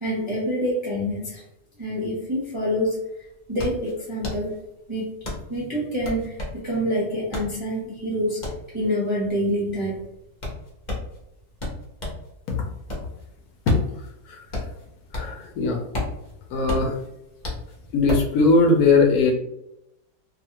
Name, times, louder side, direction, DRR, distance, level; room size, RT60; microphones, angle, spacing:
voice 1, 0.0-1.4 1.8-3.0 3.5-4.6 4.9-5.1 5.5-8.5 8.7-10.0, equal, 35° right, -7 dB, 0.5 m, -26 dB
sound 1, 3.2-12.3 12.7-15.5 15.8-18.4, left 2 dB, 40° left, 0.7 m, -33 dB
voice 2, 15.1-15.8 16.5-17.0 17.9-19.3, left 3 dB, 70° left, 1 dB, 1.0 m, -19 dB
2.7 x 2.4 x 2.8 m, 0.85 s
omnidirectional pair, 1.8 m